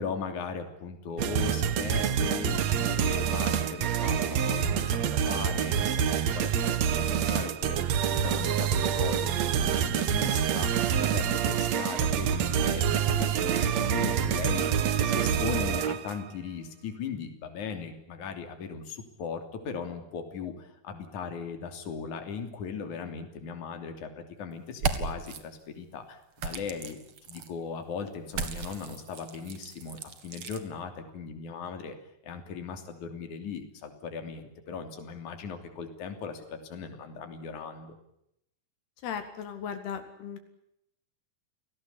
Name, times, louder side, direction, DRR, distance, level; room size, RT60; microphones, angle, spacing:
voice 1, 0.0-27.0 27.3-31.9 32.2-37.9, left 6 dB, 50° left, 7 dB, 4.2 m, -38 dB
sound 1, 1.2-16.2, right 8 dB, 65° right, 1.8 m, -27 dB
sound 2, 24.7-25.4 26.4-27.5 28.3-30.6, right 5 dB, 50° right, 2.6 m, -35 dB
voice 2, 39.0-40.4, left 7 dB, 80° left, 8 dB, 4.0 m, -36 dB
29.5 x 19.0 x 8.4 m, 0.78 s
omnidirectional pair, 4.6 m